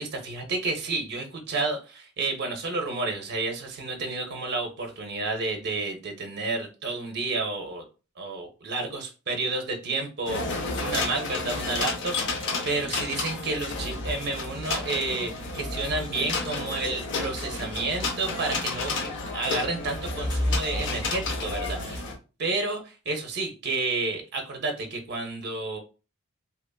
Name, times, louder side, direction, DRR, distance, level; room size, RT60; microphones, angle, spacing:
voice 1, 0.0-7.8 8.2-18.9 19.3-22.0 22.4-25.8, right 3 dB, 50° right, 3 dB, 0.5 m, -31 dB
sound 1, 10.3-22.1, left 3 dB, 55° left, 0.6 m, -31 dB
2.8 x 2.3 x 2.3 m, 0.32 s
head